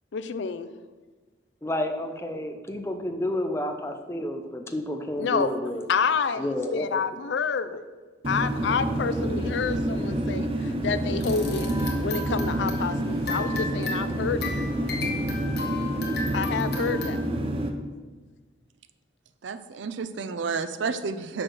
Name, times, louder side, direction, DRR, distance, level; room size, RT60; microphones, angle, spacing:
voice 1, 0.1-0.7 5.2-5.5 5.9-7.8 8.3-11.7 12.0-14.5 16.3-17.2, left 5 dB, 70° left, 12 dB, 0.4 m, -28 dB
voice 2, 1.6-5.8 6.4-7.0, left 1 dB, 15° left, 5 dB, 0.5 m, -30 dB
sound 1, 8.2-17.7, right 1 dB, 30° right, 0.6 m, -28 dB
sound 2, 11.2-17.1, left 3 dB, 55° left, 1.3 m, -35 dB
voice 3, 19.4-21.4, right 5 dB, 80° right, 12 dB, 0.5 m, -31 dB
6.1 x 4.8 x 6.4 m, 1.4 s
head